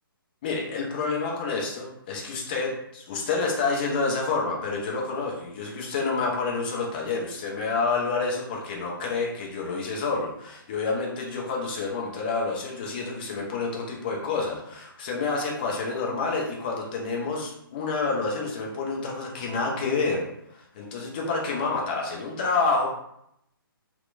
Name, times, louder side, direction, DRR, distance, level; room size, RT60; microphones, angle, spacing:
voice 1, 0.4-20.2 20.5-22.9, left 4 dB, 25° left, -2 dB, 0.4 m, -28 dB
2.8 x 2.0 x 2.4 m, 0.76 s
figure-of-eight pair, 135°, 12 cm